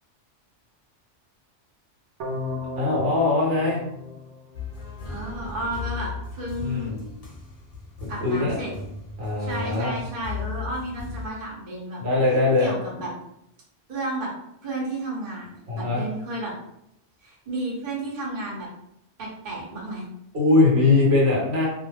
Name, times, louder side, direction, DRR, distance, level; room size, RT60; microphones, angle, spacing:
sound 1, 2.2-5.2, left 2 dB, 85° right, 0.9 m, -35 dB
voice 1, 2.8-3.8 6.6-6.9 8.0-8.6 9.2-9.9 12.0-12.7 15.7-16.0 20.3-21.7, left 3 dB, 65° right, -5 dB, 1.1 m, -21 dB
sound 2, 4.5-11.3, left 5 dB, 60° left, 0.4 m, -37 dB
voice 2, 5.0-7.1 8.1-8.7 9.4-12.0 12.6-13.1 13.9-14.3 14.6-15.5 15.7-16.5 17.2-18.7 19.2-20.1, right 1 dB, 45° right, -6 dB, 0.9 m, -32 dB
2.4 x 2.0 x 3.2 m, 0.80 s
omnidirectional pair, 1.2 m